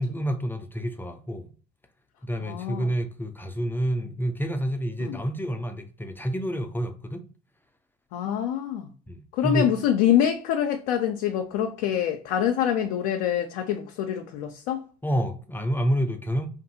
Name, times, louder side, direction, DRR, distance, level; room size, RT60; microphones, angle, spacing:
voice 1, 0.0-1.5 2.2-7.2 9.1-9.7 15.0-16.5, equal, 10° left, 0.4 m, -28 dB
voice 2, 2.4-2.9 5.0-5.2 8.1-8.9 9.3-14.8, left 10 dB, 80° left, 0.4 m, -25 dB
2.6 x 2.5 x 2.6 m
hypercardioid pair, 70°, 21 cm